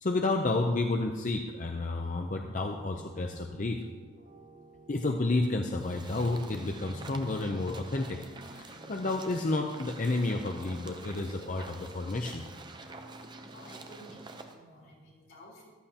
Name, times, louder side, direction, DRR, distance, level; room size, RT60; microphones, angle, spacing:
voice 1, 0.0-3.8 4.9-12.4, left 2 dB, 40° left, 3 dB, 0.6 m, -31 dB
sound 1, 2.7-14.5, right 1 dB, 75° right, 2.5 m, -53 dB
sound 2, 5.8-14.6, right 3 dB, 25° right, 0.6 m, -48 dB
voice 2, 13.5-15.7, equal, 80° left, -4 dB, 4.2 m, -53 dB
14.0 x 12.0 x 2.9 m, 1.4 s
head